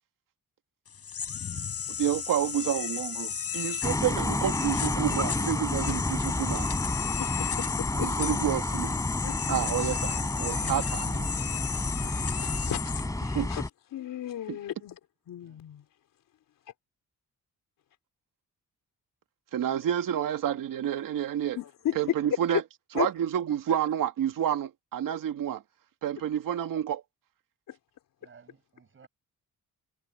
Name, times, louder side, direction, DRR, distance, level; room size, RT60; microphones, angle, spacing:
sound 1, 0.9-13.7, left 7 dB, 45° left, 5.8 m, -35 dB
voice 1, 2.0-6.7 8.0-8.9 9.5-11.3 13.3-13.5 19.5-21.6 22.0-22.6 23.0-25.6 26.0-27.0, right 10 dB, 85° right, 2.0 m, -29 dB
sound 2, 3.8-13.7, left 2 dB, 10° left, 3.8 m, -30 dB
voice 2, 7.2-8.1 9.2-9.6 12.1-12.2 12.4-13.6 13.9-15.0 15.3-15.8 21.5-22.0 22.9-23.1 27.7-27.8, left 11 dB, 85° left, 3.7 m, -35 dB
voice 3, 28.2-29.1, right 6 dB, 40° right, 7.3 m, -56 dB
wide cardioid pair, 155°, 32 cm